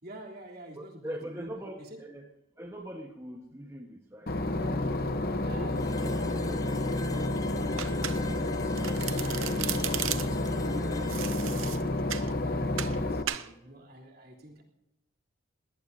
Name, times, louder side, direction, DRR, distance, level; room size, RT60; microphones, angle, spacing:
voice 1, 0.0-2.0 5.4-7.4 7.8-8.9 9.3-14.6, right 1 dB, 50° right, -1 dB, 3.4 m, -48 dB
voice 2, 0.8-2.3 2.6-5.1, right 1 dB, 15° right, 1 dB, 1.2 m, -43 dB
Boat Water vehicle / Engine, 4.3-13.2, left 2 dB, 45° left, 1.0 m, -30 dB
sound 1, 5.7-13.5, left 2 dB, 15° left, 0.7 m, -45 dB
Domestic sounds home sounds, 7.8-8.5 8.8-10.5 11.1-12.3 12.8-13.0 13.3-13.5, right 11 dB, 85° right, 0.9 m, -35 dB
20.5 x 18.5 x 2.8 m, 0.94 s
head